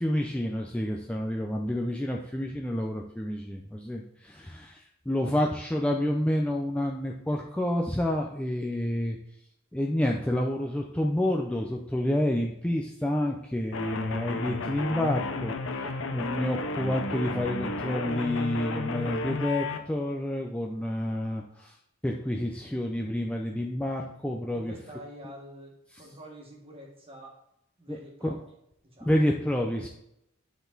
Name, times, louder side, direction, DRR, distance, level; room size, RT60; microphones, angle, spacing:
voice 1, 0.0-9.2 9.7-15.5 16.1-21.8 22.0-24.7 27.9-28.0 28.2-28.3 29.0-29.9, left 1 dB, 5° left, 0 dB, 0.4 m, -29 dB
sound 1, 13.7-19.8, left 3 dB, 65° left, 0.7 m, -33 dB
voice 2, 24.5-27.4 27.8-28.4 28.8-29.2, right 1 dB, 30° right, -1 dB, 1.6 m, -47 dB
9.4 x 4.1 x 3.9 m, 0.79 s
head